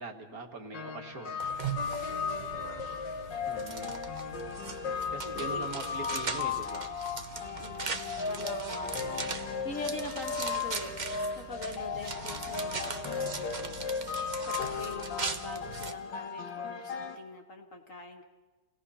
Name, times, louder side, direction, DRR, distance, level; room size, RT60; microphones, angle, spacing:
voice 1, 0.0-1.4 3.5-4.0 5.1-6.9, right 3 dB, 55° right, 3 dB, 2.0 m, -42 dB
sound 1, 0.7-17.2, left 5 dB, 85° left, 2.0 m, -36 dB
sound 2, 1.4-15.9, right 5 dB, 35° right, 0.8 m, -40 dB
voice 2, 2.1-2.7 5.3-5.7 7.4-7.9 8.3-11.0 11.3-13.8 14.5-18.2, left 2 dB, 45° left, 2 dB, 2.2 m, -44 dB
27.5 x 17.5 x 5.7 m, 1.2 s
omnidirectional pair, 1.9 m